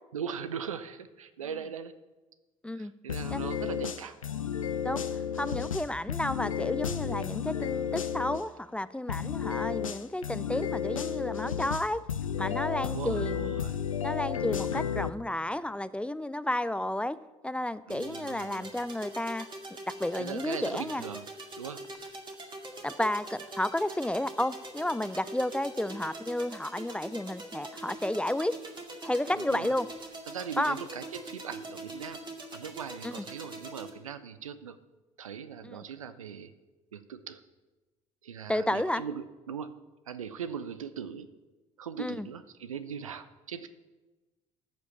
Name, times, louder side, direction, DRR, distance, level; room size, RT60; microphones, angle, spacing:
voice 1, 0.1-2.0 2.7-4.2 12.8-13.8 17.9-18.7 20.1-21.2 21.6-22.0 29.4-29.7 30.3-32.2 32.5-34.8 35.2-36.5 36.9-37.4 38.2-39.7 40.1-41.3 41.8-43.7, right 7 dB, 80° right, 13 dB, 0.6 m, -40 dB
sound 1, 3.1-8.4 9.1-15.1, left 8 dB, 85° left, 0.4 m, -32 dB
voice 2, 5.4-12.0 12.4-13.5 14.0-17.2 17.4-19.5 20.0-21.0 22.8-28.5 29.0-29.9 30.6-30.8 33.0-33.2 35.6-35.8 38.5-39.0 42.0-42.3, left 1 dB, 5° left, 15 dB, 0.4 m, -32 dB
sound 2, 17.9-33.9, right 2 dB, 30° right, 2.2 m, -43 dB
13.5 x 5.3 x 7.0 m, 1.2 s
figure-of-eight pair, 55°, 17 cm